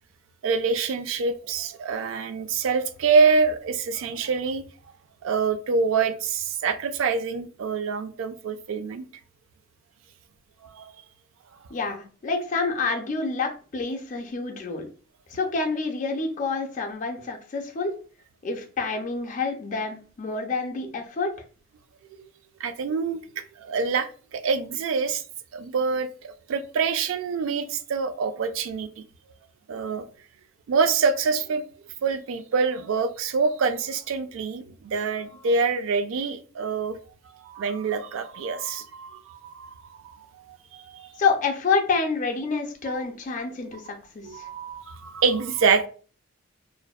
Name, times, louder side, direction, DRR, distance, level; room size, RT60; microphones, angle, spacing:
voice 1, 0.4-4.6 5.2-9.1 10.6-10.9 22.6-25.2 25.5-29.0 29.7-30.1 30.7-31.6 32.0-37.0 37.4-41.2 42.9-43.0 44.2-45.9, right 5 dB, 70° right, 0.3 m, -26 dB
voice 2, 11.7-14.9 15.3-17.9 18.4-21.3 41.2-44.5, left 4 dB, 40° left, 0.4 m, -28 dB
2.5 x 2.1 x 2.2 m
head